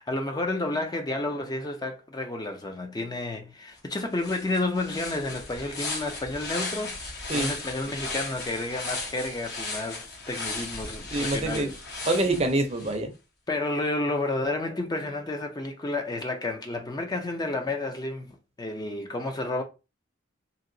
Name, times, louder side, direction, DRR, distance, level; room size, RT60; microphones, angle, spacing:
voice 1, 0.0-11.8 13.5-19.6, left 2 dB, 20° left, 0.4 m, -31 dB
sound 1, 3.8-3.9 4.2-13.0, left 3 dB, 55° left, 1.0 m, -36 dB
voice 2, 11.1-11.7 12.1-13.1, right 2 dB, 30° right, 0.5 m, -25 dB
2.8 x 2.8 x 2.6 m
head